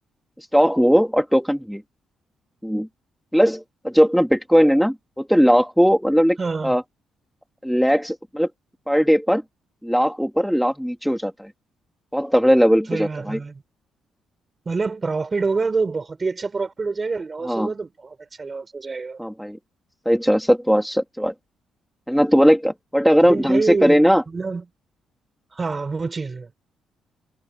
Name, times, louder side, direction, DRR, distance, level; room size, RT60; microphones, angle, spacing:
voice 1, 0.5-1.8 2.6-2.9 3.3-6.4 6.6-6.8 7.6-8.5 8.9-9.4 9.8-11.5 12.1-13.4 17.4-17.7 19.2-19.6 20.0-21.3 22.1-24.2, equal, ahead, 2.9 m, -18 dB
voice 2, 6.4-6.7 12.9-13.6 14.6-19.2 23.2-24.6 25.5-26.5, right 4 dB, 30° right, 4.6 m, -26 dB
cardioid pair, 90°, 0 cm